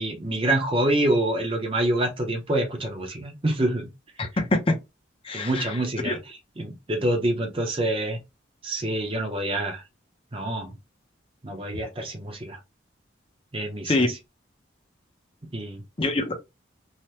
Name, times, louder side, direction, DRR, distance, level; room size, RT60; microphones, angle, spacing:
voice 1, 0.0-3.9 5.3-8.2 8.6-9.8 10.3-10.7 11.4-12.6 13.5-14.2 15.5-15.8, right 1 dB, 30° right, 0.7 m, -26 dB
voice 2, 4.2-4.7 5.2-5.7 6.0-6.2 13.8-14.1 16.0-16.3, left 2 dB, 25° left, 0.6 m, -24 dB
3.3 x 2.1 x 2.8 m
head